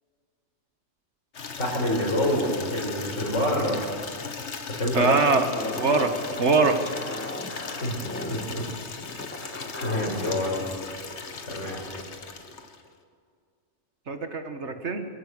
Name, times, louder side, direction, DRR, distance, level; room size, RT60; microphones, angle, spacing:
Water tap faucet / Liquid, 1.3-12.9, left 5 dB, 70° left, 1.6 m, -38 dB
voice 1, 1.6-3.8 4.7-5.2 7.8-8.7 9.8-10.6 11.5-11.9, left 1 dB, 85° left, -1 dB, 5.6 m, -27 dB
voice 2, 4.9-5.5 5.8-6.1 6.4-6.8 14.1-15.1, right 4 dB, 70° right, 7 dB, 1.9 m, -22 dB
sound 1, 5.3-10.5, left 1 dB, 10° left, 1.6 m, -38 dB
23.0 x 15.5 x 8.0 m, 2.1 s
omnidirectional pair, 1.2 m